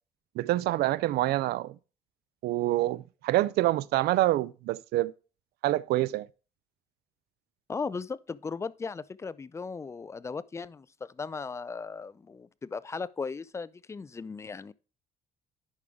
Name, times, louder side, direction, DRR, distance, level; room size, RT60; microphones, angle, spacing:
voice 1, 0.4-1.8 2.4-5.1 5.6-6.3, right 16 dB, 70° right, 0.4 m, -26 dB
voice 2, 7.7-14.7, left 4 dB, 15° left, 0.3 m, -37 dB
10.5 x 5.0 x 3.6 m
cardioid pair, 110°, 17 cm